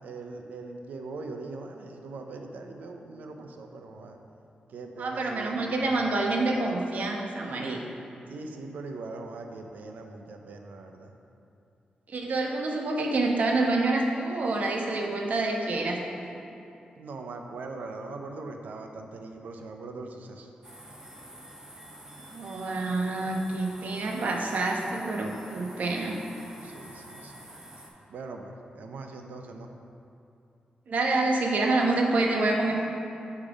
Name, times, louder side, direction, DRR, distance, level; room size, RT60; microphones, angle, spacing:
voice 1, 0.0-4.2 4.7-6.1 8.3-11.1 17.0-20.5 23.8-24.0 26.6-27.5 28.1-29.7, right 3 dB, 85° right, 4 dB, 0.6 m, -41 dB
voice 2, 5.0-7.8 12.1-16.0 16.3-16.4 22.3-26.2 30.9-32.8, right 2 dB, 65° right, 1 dB, 1.0 m, -27 dB
sound 1, 20.6-27.9, right 1 dB, 25° right, 1.3 m, -47 dB
7.3 x 5.1 x 4.9 m, 2.7 s
cardioid pair, 75°, 3 cm